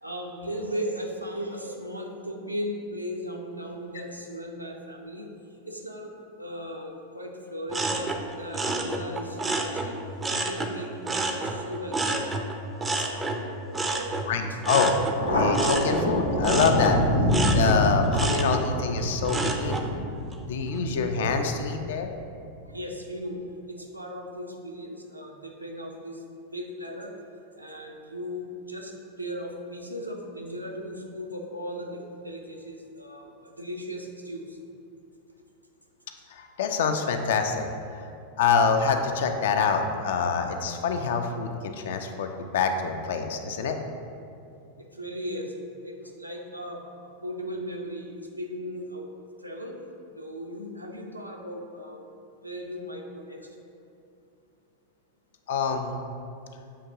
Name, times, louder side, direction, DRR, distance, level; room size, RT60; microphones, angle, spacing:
voice 1, 0.0-5.3 5.6-6.1 6.4-10.0 10.3-12.1 12.7-14.4 20.7-20.8 22.6-23.4 23.7-26.2 26.5-27.1 27.6-34.6 44.8-45.5 45.8-49.1 49.4-49.7 50.2-52.0 52.4-53.4, equal, 85° right, 0 dB, 0.5 m, -37 dB
sound 1, 7.7-10.7 11.0-19.9 20.3-20.8, right 2 dB, 15° right, 0.4 m, -30 dB
voice 2, 14.3-15.0 15.3-17.0 17.5-19.8 20.5-22.1 36.3-37.7 38.4-43.8 55.5-55.9, left 5 dB, 55° left, 6 dB, 0.3 m, -25 dB
Thunder, 15.2-22.2, equal, 85° left, 0.7 m, -27 dB
6.6 x 2.8 x 2.7 m, 2.5 s
figure-of-eight pair, 90°, 0 cm